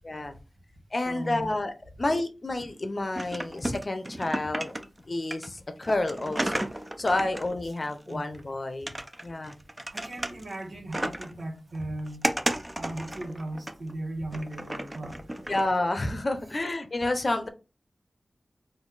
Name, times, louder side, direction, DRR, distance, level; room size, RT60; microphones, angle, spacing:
voice 1, 0.0-0.4 0.9-4.7 5.1-6.6 7.0-9.6 15.5-17.5, left 2 dB, 45° left, 0.7 m, -30 dB
voice 2, 1.0-1.6 7.8-8.3 9.9-12.3 12.8-15.5, right 1 dB, 85° right, 1.5 m, -37 dB
sound 1, 3.1-5.0 5.3-8.4 8.9-10.6 10.9-11.4 11.7-13.9 14.3-15.6, right 1 dB, 20° right, 0.5 m, -33 dB
4.2 x 2.6 x 3.9 m
wide cardioid pair, 75°, 0 cm